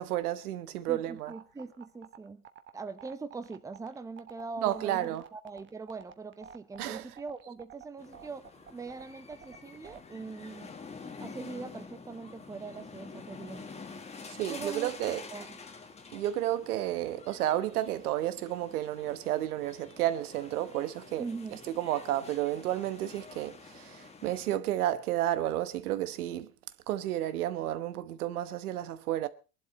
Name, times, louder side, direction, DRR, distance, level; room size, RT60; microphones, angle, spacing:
voice 1, 0.0-1.3 4.6-5.2 6.8-7.1 14.3-15.2 16.1-21.2 21.8-26.5 26.9-29.3, right 13 dB, 90° right, 1.2 m, -31 dB
voice 2, 0.9-2.4 2.7-8.5 8.7-10.7 11.2-13.7 14.5-14.9 15.3-15.6 21.2-21.6, right 4 dB, 5° right, 0.8 m, -42 dB
sound 1, 1.2-10.0, right 9 dB, 25° right, 1.2 m, -50 dB
sound 2, 8.0-24.6, left 4 dB, 15° left, 1.4 m, -48 dB
19.5 x 11.5 x 4.2 m
supercardioid pair, 130°, 43 cm